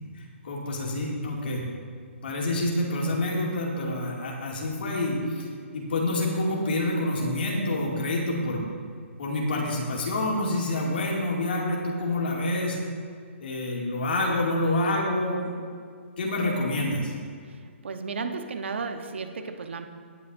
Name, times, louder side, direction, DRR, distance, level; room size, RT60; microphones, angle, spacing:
voice 1, 0.1-1.6 2.2-5.5 5.7-8.6 9.2-12.8 13.4-15.5 16.2-17.1, left 1 dB, 50° left, -3 dB, 2.4 m, -27 dB
voice 2, 17.8-19.9, right 4 dB, 60° right, 6 dB, 1.1 m, -33 dB
17.5 x 9.0 x 2.7 m, 2.1 s
hypercardioid pair, 175°, 7 cm